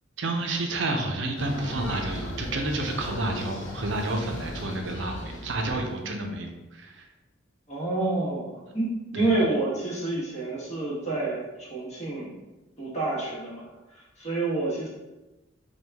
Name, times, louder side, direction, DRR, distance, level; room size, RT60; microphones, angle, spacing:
voice 1, 0.2-6.5 6.8-7.0 9.2-9.3, right 2 dB, 65° right, 3 dB, 0.5 m, -30 dB
sound 1, 1.4-6.3, left 1 dB, 75° left, 0.7 m, -37 dB
voice 2, 7.7-12.3 12.8-13.7 13.9-14.9, right 2 dB, 35° left, -6 dB, 1.2 m, -28 dB
4.5 x 2.3 x 3.4 m, 1.1 s
head